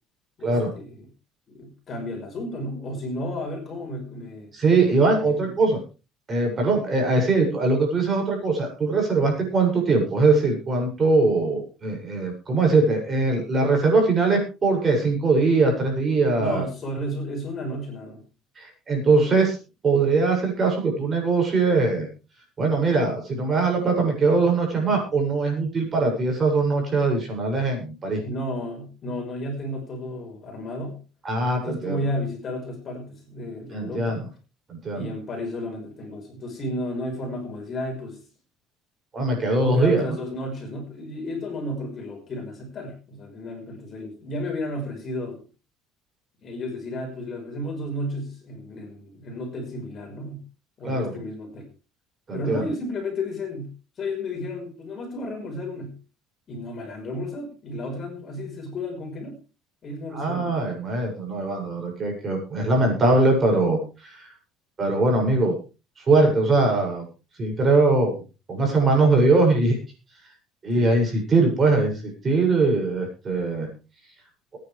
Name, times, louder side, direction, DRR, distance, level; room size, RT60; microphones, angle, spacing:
voice 1, 0.4-1.1 1.5-4.5 5.2-5.5 16.4-18.2 28.2-31.0 31.6-34.2 34.9-38.2 39.4-45.4 46.4-50.4 50.8-51.7 52.3-53.7 54.0-55.9 56.5-59.4 59.8-60.7 70.8-71.1, left 1 dB, 35° left, 3 dB, 5.4 m, -33 dB
voice 2, 4.5-5.8 6.3-16.6 18.6-19.6 19.8-22.1 22.6-28.2 31.2-32.0 33.7-34.2 34.7-35.1 39.1-40.0 50.8-51.1 52.3-52.6 60.1-64.3 64.8-65.6 66.0-67.0 67.4-68.2 68.5-69.8 70.6-73.7, right 3 dB, 25° right, 1 dB, 7.4 m, -21 dB
22.5 x 9.9 x 3.5 m, 0.31 s
cardioid pair, 140°, 0 cm